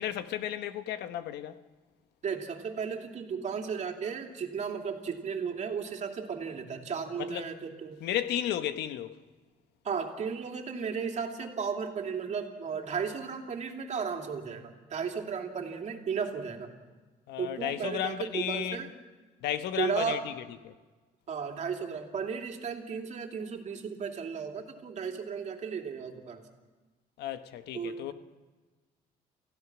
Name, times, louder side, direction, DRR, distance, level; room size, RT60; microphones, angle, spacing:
voice 1, 0.0-1.6 7.2-7.5 8.0-9.2 17.3-18.9 19.4-20.3 20.6-20.7 27.2-28.1, left 11 dB, 80° left, 1.2 m, -33 dB
voice 2, 2.2-8.0 9.8-16.7 17.4-18.9 19.7-20.3 21.3-26.4 27.7-28.1, right 6 dB, 45° right, 2.9 m, -35 dB
28.5 x 16.0 x 6.2 m
cardioid pair, 110°, 17 cm